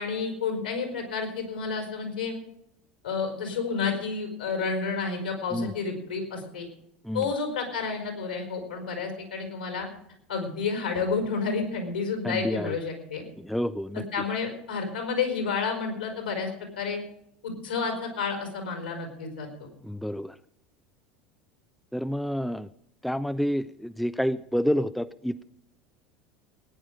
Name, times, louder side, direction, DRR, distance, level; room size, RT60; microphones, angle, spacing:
voice 1, 0.0-2.4 3.0-6.7 7.1-9.9 10.3-13.2 14.1-16.5 16.8-17.0 17.4-19.7, left 5 dB, 75° left, 3 dB, 4.5 m, -30 dB
voice 2, 12.2-12.8 13.4-14.0 19.8-20.3 21.9-22.7 23.0-25.4, equal, ahead, 13 dB, 0.5 m, -29 dB
19.5 x 10.0 x 5.0 m, 0.76 s
figure-of-eight pair, 75°, 5 cm